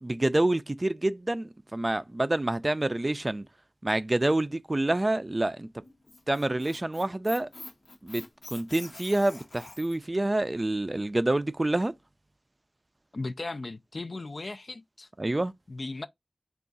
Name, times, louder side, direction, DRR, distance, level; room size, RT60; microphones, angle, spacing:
voice 1, 0.0-3.4 3.8-5.8 6.3-7.5 8.0-8.2 8.5-11.9 15.2-15.5, right 1 dB, 35° right, 0.3 m, -27 dB
Squeak, 5.8-10.1, left 2 dB, 80° left, 0.8 m, -45 dB
voice 2, 13.1-15.1 15.7-16.1, left 3 dB, 65° left, 0.3 m, -36 dB
3.5 x 2.4 x 3.8 m
wide cardioid pair, 50°, 0 cm